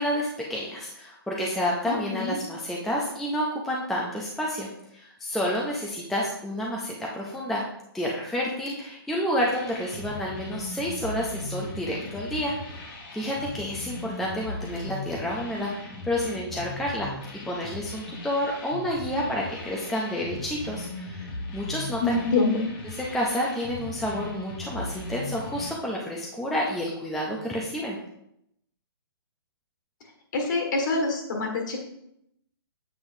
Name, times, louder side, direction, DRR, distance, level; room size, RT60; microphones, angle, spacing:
voice 1, 0.0-7.6 7.9-12.5 12.8-17.1 17.5-22.2 23.1-28.0, equal, ahead, -3 dB, 0.4 m, -30 dB
voice 2, 1.8-2.4 22.0-22.7 30.3-31.8, left 3 dB, 50° left, 3 dB, 1.6 m, -25 dB
sound 1, 9.4-25.7, left 2 dB, 25° left, 1.0 m, -38 dB
7.8 x 5.4 x 2.6 m, 0.78 s
hypercardioid pair, 160°, 13 cm